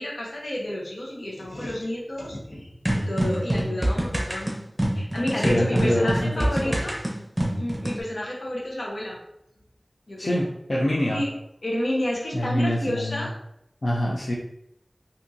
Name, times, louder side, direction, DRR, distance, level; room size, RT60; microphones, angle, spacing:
voice 1, 0.0-4.5 4.9-6.9 7.6-9.2 10.1-10.5 11.1-11.3 11.6-13.3, left 1 dB, 75° left, -3 dB, 1.0 m, -30 dB
sound 1, 2.8-8.0, right 1 dB, 20° right, 0.8 m, -26 dB
voice 2, 5.3-6.8 10.2-11.2 12.3-13.3 13.8-14.3, left 1 dB, 55° left, -5 dB, 0.6 m, -25 dB
3.7 x 2.7 x 2.7 m, 0.78 s
wide cardioid pair, 60°, 0 cm